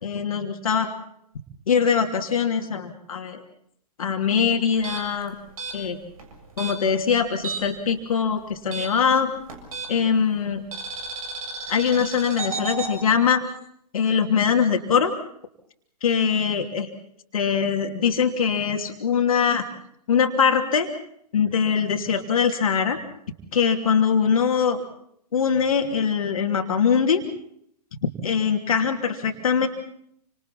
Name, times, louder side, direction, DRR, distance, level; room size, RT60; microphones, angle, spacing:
voice 1, 0.0-0.9 1.7-3.4 4.0-5.4 5.7-6.0 6.6-9.3 9.9-10.6 11.7-13.5 13.9-15.1 16.0-16.9 17.3-19.7 20.1-20.9 21.3-23.0 23.5-24.8 25.3-27.2 28.0-29.7, left 6 dB, 60° left, 4 dB, 2.9 m, -22 dB
sound 1, 4.7-7.9 8.1-10.2 10.7-12.9, right 4 dB, 60° right, 7.0 m, -33 dB
29.5 x 26.0 x 4.3 m, 0.69 s
figure-of-eight pair, 115°, 21 cm